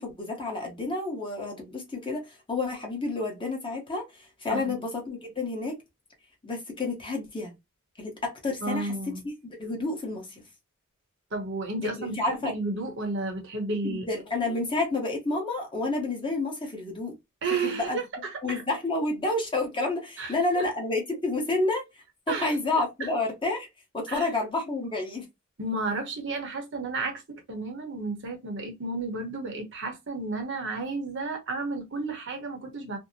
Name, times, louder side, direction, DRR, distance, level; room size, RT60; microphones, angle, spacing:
voice 1, 0.0-4.0 4.4-5.8 6.4-7.5 8.0-9.1 9.6-10.4 11.8-12.5 13.8-17.1 17.6-18.0 18.4-21.8 22.4-23.7 23.9-25.3, left 2 dB, 25° left, 0.9 m, -29 dB
voice 2, 8.6-9.2 11.3-14.1 17.4-18.6 20.2-20.6 22.3-23.1 24.1-24.3 25.6-33.0, right 3 dB, 55° right, 0.9 m, -32 dB
2.6 x 2.1 x 2.6 m
head